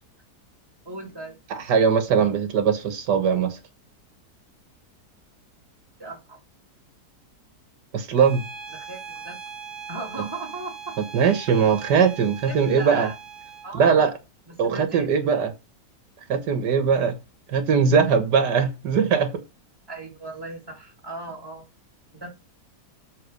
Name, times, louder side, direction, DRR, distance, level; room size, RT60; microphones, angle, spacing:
voice 1, 0.8-1.4 6.0-6.4 8.7-9.4 9.9-11.0 11.5-11.7 12.5-13.1 13.6-14.1 14.5-15.1 19.9-21.7 22.1-22.3, right 2 dB, 15° right, 2.8 m, -37 dB
voice 2, 1.5-3.6 7.9-8.4 11.1-13.1 13.7-14.1 14.6-15.5 16.3-17.2 17.5-19.3, right 6 dB, 85° right, 1.8 m, -20 dB
Bowed string instrument, 8.1-13.7, right 6 dB, 15° left, 1.8 m, -40 dB
8.1 x 4.1 x 6.5 m
omnidirectional pair, 1.8 m